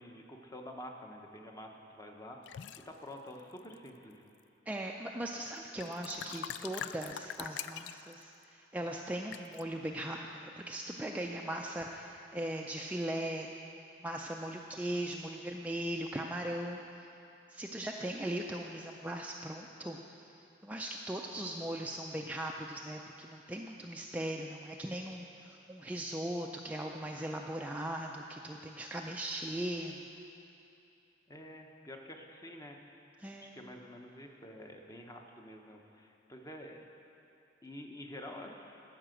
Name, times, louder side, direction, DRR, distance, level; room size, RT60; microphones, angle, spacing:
voice 1, 0.0-2.4 2.9-4.2 5.9-6.0 31.3-32.8 33.4-36.9 37.6-38.8, left 1 dB, 20° left, 2 dB, 0.9 m, -48 dB
sound 1, 2.5-2.9 3.6-4.1 5.5-5.6 5.8-8.2 9.3-9.6, left 9 dB, 70° left, 0.3 m, -43 dB
voice 2, 4.7-13.5 14.0-16.8 17.5-30.0 33.2-33.6, right 1 dB, 10° right, 0 dB, 0.4 m, -39 dB
13.0 x 5.8 x 7.6 m, 2.7 s
head